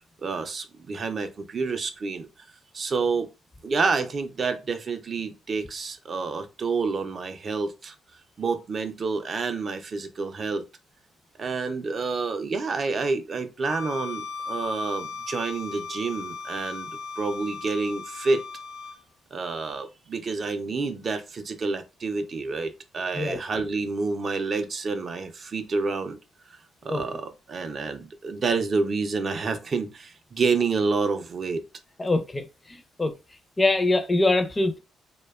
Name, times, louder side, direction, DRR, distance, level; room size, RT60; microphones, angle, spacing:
voice 1, 0.2-2.3 2.7-3.3 3.6-7.9 8.4-10.6 11.4-16.9 17.2-18.4 19.3-26.2 26.8-31.6, right 4 dB, 45° right, 0.4 m, -28 dB
Bowed string instrument, 13.6-19.0, left 4 dB, 60° left, 0.7 m, -37 dB
voice 2, 32.0-33.1 33.6-34.8, left 2 dB, 20° left, 0.4 m, -24 dB
2.6 x 2.1 x 2.2 m
cardioid pair, 90°, 0 cm